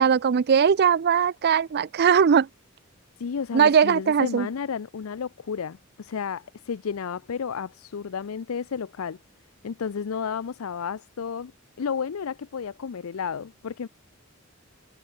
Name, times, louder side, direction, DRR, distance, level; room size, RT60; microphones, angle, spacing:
voice 1, 0.0-2.5 3.5-4.5, right 7 dB, 50° right, 0.4 m, -20 dB
voice 2, 3.2-9.2 9.6-11.5 11.8-13.9, left 6 dB, 80° left, 0.5 m, -32 dB
head